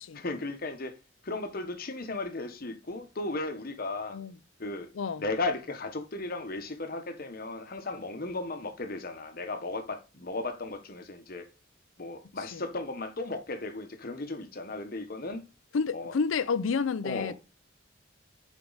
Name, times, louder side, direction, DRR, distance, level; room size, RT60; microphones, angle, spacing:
voice 1, 0.1-1.0 1.2-4.2 4.6-4.9 5.2-11.5 12.0-15.4 15.9-16.1 17.0-17.3, left 2 dB, 45° left, 1.0 m, -35 dB
voice 2, 15.7-17.3, left 5 dB, 80° left, 0.5 m, -30 dB
7.0 x 4.6 x 3.9 m
head